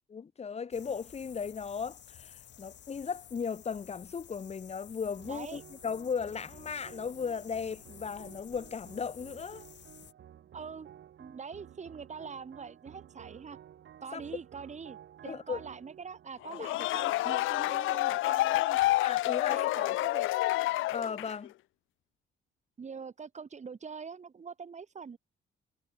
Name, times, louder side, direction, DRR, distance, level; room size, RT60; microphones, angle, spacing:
voice 1, 0.1-9.6 14.1-14.2 15.2-15.6 16.6-16.7 19.0-19.6 19.9-20.0 20.9-21.5, left 6 dB, 30° left, 0.9 m, -36 dB
sound 1, 0.7-10.1, left 10 dB, 65° left, 2.5 m, -53 dB
sound 2, 5.2-17.7, right 10 dB, 65° right, 7.2 m, -54 dB
voice 2, 5.3-5.6 10.5-10.9 11.2-13.6 14.0-18.8 19.5-20.3 22.8-25.2, right 5 dB, 35° right, 1.9 m, -44 dB
sound 3, 16.4-21.5, left 17 dB, 85° left, 0.5 m, -29 dB
cardioid pair, 90°, 20 cm